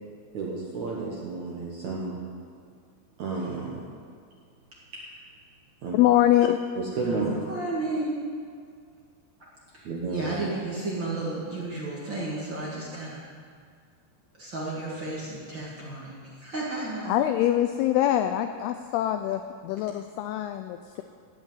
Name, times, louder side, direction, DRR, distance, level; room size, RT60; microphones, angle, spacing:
voice 1, 0.3-2.2 3.2-3.9 4.9-5.0 5.8-6.0 6.8-7.5 9.8-10.3, right 3 dB, 65° right, -4 dB, 1.9 m, -32 dB
voice 2, 5.9-6.6 17.1-21.0, left 12 dB, 85° left, 9 dB, 2.3 m, -24 dB
voice 3, 7.0-8.2 9.7-13.2 14.4-17.1, right 2 dB, 40° right, -6 dB, 1.8 m, -33 dB
16.0 x 5.5 x 9.2 m, 2.2 s
omnidirectional pair, 5.0 m